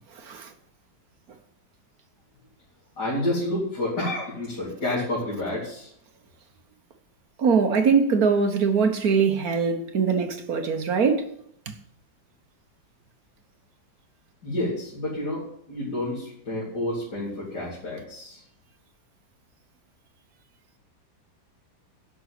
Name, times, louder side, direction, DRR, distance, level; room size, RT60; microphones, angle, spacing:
voice 1, 0.1-0.5 7.4-11.3 11.7-11.8, right 5 dB, 55° right, 1.4 m, -22 dB
voice 2, 3.0-5.9 14.4-18.4, left 1 dB, 60° left, 4.1 m, -29 dB
10.5 x 6.2 x 8.1 m
omnidirectional pair, 2.1 m